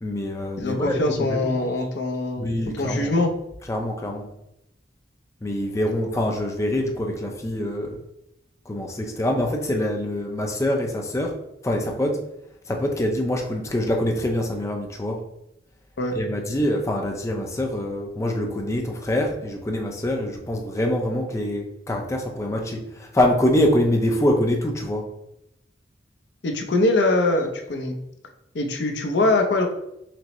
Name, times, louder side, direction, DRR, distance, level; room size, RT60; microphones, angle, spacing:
voice 1, 0.0-1.6 2.4-3.1 3.7-4.3 5.4-8.0 8.7-11.3 11.6-12.2 12.7-15.2 16.2-25.0, left 1 dB, 15° left, 2 dB, 0.5 m, -25 dB
voice 2, 0.6-2.5 2.8-3.3 16.0-16.2 26.4-28.0 28.5-29.7, left 2 dB, 75° left, 4 dB, 0.6 m, -22 dB
6.0 x 2.0 x 3.0 m, 0.83 s
head